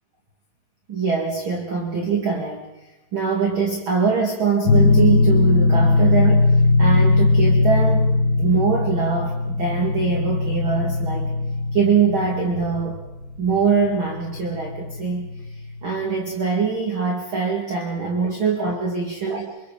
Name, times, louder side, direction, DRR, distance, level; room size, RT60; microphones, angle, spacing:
voice 1, 0.9-2.7 3.1-8.1 8.4-11.3 11.7-13.0 13.4-19.6, right 5 dB, 35° right, 1 dB, 2.7 m, -23 dB
sound 1, 4.7-15.9, left 3 dB, 75° left, 3.5 m, -19 dB
28.0 x 26.0 x 5.2 m, 1.0 s
omnidirectional pair, 4.6 m